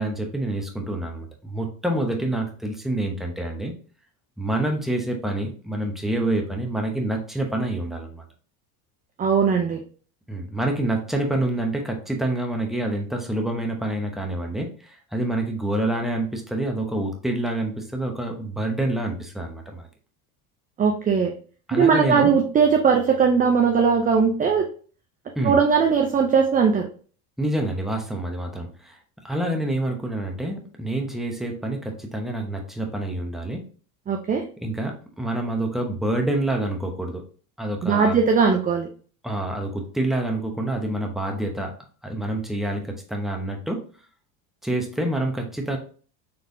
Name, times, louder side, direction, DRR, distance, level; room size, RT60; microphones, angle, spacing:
voice 1, 0.0-3.7 4.4-8.2 10.3-19.9 21.7-22.4 25.3-25.6 27.4-29.0 29.2-33.7 34.6-37.2 37.6-38.2 39.2-41.7 42.0-43.8 44.6-45.8, right 1 dB, ahead, 2 dB, 0.9 m, -27 dB
voice 2, 9.2-9.8 20.8-21.3 21.7-24.7 25.4-26.9 34.1-34.4 37.8-38.9, right 6 dB, 20° right, 3 dB, 0.4 m, -19 dB
4.2 x 3.3 x 2.6 m, 0.41 s
supercardioid pair, 100°, 47 cm